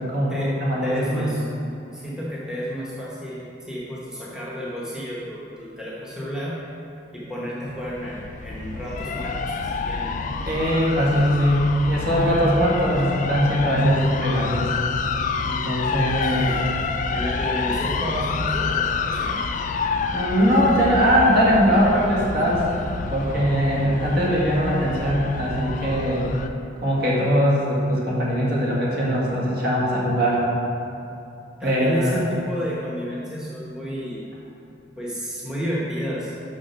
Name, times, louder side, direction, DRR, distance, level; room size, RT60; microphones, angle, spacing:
voice 1, 0.0-0.4 0.6-1.3 10.5-14.7 15.5-16.5 20.1-22.7 23.1-26.3 26.8-30.5 31.6-32.2, equal, 50° right, -5 dB, 1.8 m, -21 dB
voice 2, 0.8-1.4 1.9-6.7 7.1-10.3 16.2-16.6 17.1-19.4 31.6-34.2 35.0-36.4, equal, 5° right, -7 dB, 1.0 m, -31 dB
sound 1, 7.7-26.5, left 4 dB, 40° left, 0.3 m, -28 dB
6.1 x 5.9 x 5.8 m, 2.8 s
head